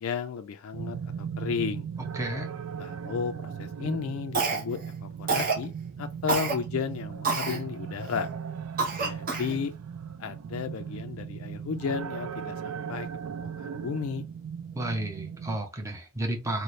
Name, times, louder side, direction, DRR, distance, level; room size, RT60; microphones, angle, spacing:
voice 1, 0.0-1.9 2.8-5.7 6.0-8.3 9.0-9.7 10.2-13.1 13.6-14.2, left 6 dB, 65° left, 0.3 m, -33 dB
sound 1, 0.7-15.6, right 7 dB, 65° right, 0.3 m, -38 dB
voice 2, 2.1-2.5 14.8-16.6, right 1 dB, 15° right, 0.6 m, -32 dB
Cough, 4.3-4.9 5.3-5.6 6.3-6.5 7.2-7.6 8.1-8.2 8.8-9.6, right 4 dB, 40° right, 0.8 m, -27 dB
3.2 x 2.1 x 4.0 m
head